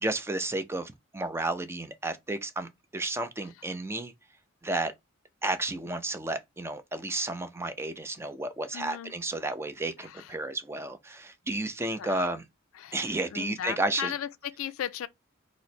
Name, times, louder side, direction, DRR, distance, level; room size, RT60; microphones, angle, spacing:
voice 1, 0.0-4.1 4.6-4.9 5.4-12.4 12.9-14.1, right 2 dB, 10° right, 0.3 m, -32 dB
voice 2, 8.7-9.1 10.0-10.4 12.0-12.3 12.7-15.1, left 9 dB, 75° left, 0.3 m, -37 dB
3.0 x 2.0 x 4.1 m
head